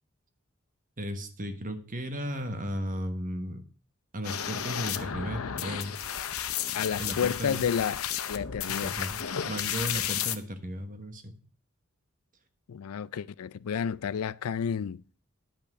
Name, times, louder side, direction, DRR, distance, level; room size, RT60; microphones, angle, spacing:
voice 1, 1.0-3.6 4.1-5.9 7.0-7.6 8.7-9.2 9.5-11.3, equal, 40° right, 1.3 m, -35 dB
sound 1, 4.2-10.4, left 9 dB, 70° left, 0.8 m, -33 dB
voice 2, 6.7-9.0 12.7-15.0, left 7 dB, 90° left, 0.4 m, -31 dB
10.5 x 5.6 x 6.2 m
head